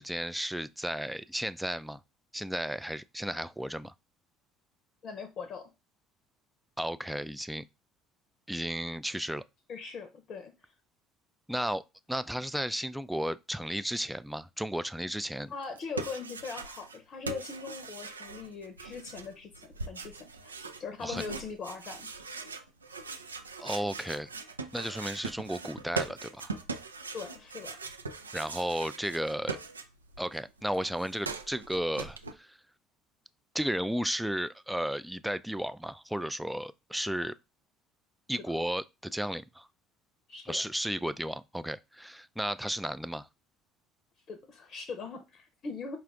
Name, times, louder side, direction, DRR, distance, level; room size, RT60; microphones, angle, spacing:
voice 1, 0.0-2.0 2.3-3.9 6.8-7.6 8.5-9.4 11.5-11.8 12.1-15.5 21.0-21.2 23.6-24.3 24.7-26.5 28.3-29.6 30.2-32.6 33.5-37.4 38.3-39.7 40.5-43.3, equal, 5° right, 0.3 m, -34 dB
voice 2, 5.0-5.7 9.7-10.5 15.5-19.5 19.9-20.5 20.8-22.1 27.1-27.8 40.3-40.6 44.3-46.0, left 5 dB, 45° left, 0.7 m, -40 dB
sound 1, 15.6-17.0 17.2-30.2 30.5-32.3, right 4 dB, 85° right, 0.3 m, -41 dB
5.0 x 2.4 x 3.5 m
figure-of-eight pair, 60°, 0 cm